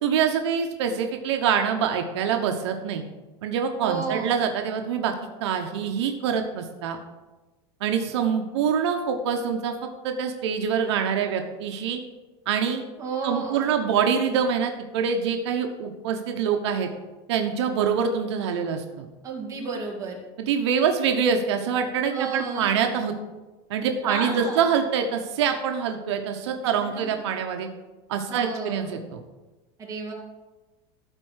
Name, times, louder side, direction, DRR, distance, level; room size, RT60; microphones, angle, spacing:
voice 1, 0.0-3.0 3.4-5.1 5.4-7.0 7.8-9.7 10.0-12.0 12.5-12.8 13.2-16.9 17.3-19.0 20.4-23.1 23.7-27.7 28.1-29.2, right 7 dB, 80° right, 4 dB, 1.1 m, -25 dB
voice 2, 3.8-4.4 13.0-13.6 19.2-20.2 22.1-22.7 24.0-24.6 26.9-27.0 28.3-28.9 29.8-30.1, right 4 dB, 25° right, -1 dB, 2.3 m, -31 dB
13.5 x 4.5 x 6.4 m, 1.2 s
supercardioid pair, 150°, 14 cm